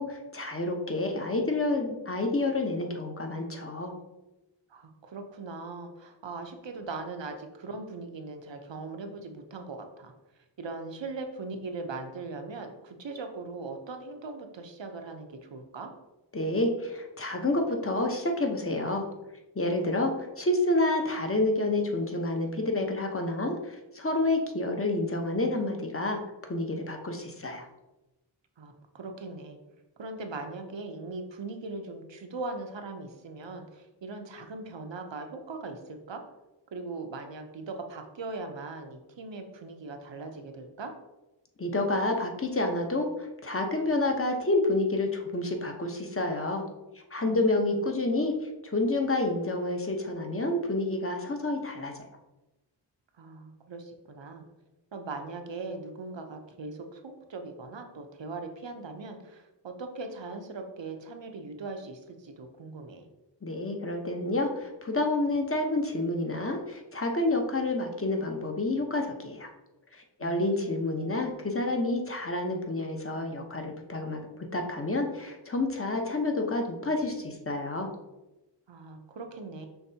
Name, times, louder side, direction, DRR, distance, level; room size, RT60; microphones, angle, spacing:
voice 1, 0.0-3.9 16.3-19.1 19.5-27.6 41.6-46.6 47.1-48.3 48.6-51.9 63.4-69.5 69.9-74.2 74.5-77.9, left 2 dB, 30° left, 3 dB, 0.8 m, -29 dB
voice 2, 4.7-10.1 10.6-15.9 28.6-29.6 30.0-36.2 36.7-40.9 47.2-47.8 53.2-54.4 54.9-63.1 70.2-71.0 78.7-79.7, right 3 dB, 80° right, 5 dB, 0.7 m, -40 dB
5.8 x 3.2 x 2.7 m, 1.0 s
wide cardioid pair, 40°, 44 cm